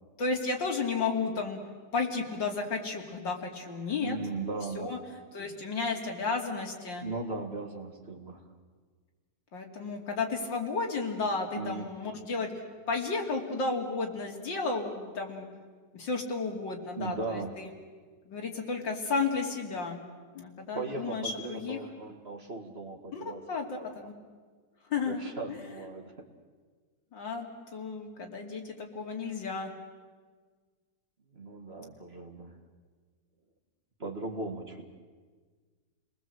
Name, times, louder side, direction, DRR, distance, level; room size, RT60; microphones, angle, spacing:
voice 1, 0.2-1.6 1.9-4.2 4.7-5.0 5.3-7.0 9.5-12.5 12.9-15.5 15.9-17.7 18.3-20.0 20.3-21.8 23.1-24.1 24.9-25.2 25.5-25.6 27.1-27.5 27.7-29.7, left 4 dB, 80° left, 1 dB, 3.5 m, -33 dB
voice 2, 4.0-4.9 7.0-8.5 11.5-11.9 17.0-17.5 20.7-23.4 23.8-24.1 25.1-26.3 31.3-32.6 34.0-34.9, right 3 dB, 35° right, 4 dB, 2.1 m, -38 dB
29.5 x 20.0 x 7.8 m, 1.5 s
omnidirectional pair, 1.9 m